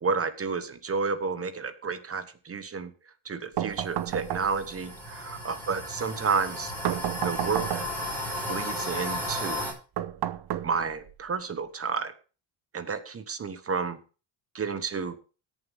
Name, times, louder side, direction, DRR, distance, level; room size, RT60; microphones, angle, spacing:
voice 1, 0.0-2.9 3.2-6.7 7.2-7.9 8.5-9.7 10.6-12.1 12.7-14.0 14.5-15.1, right 5 dB, 30° right, 11 dB, 1.1 m, -31 dB
sound 1, 3.6-4.8 6.8-8.1 10.0-11.1, right 12 dB, 50° right, 0.9 m, -31 dB
sound 2, 3.7-9.7, left 1 dB, 5° left, 6.2 m, -35 dB
17.5 x 7.4 x 3.5 m, 0.35 s
cardioid pair, 120°, 50 cm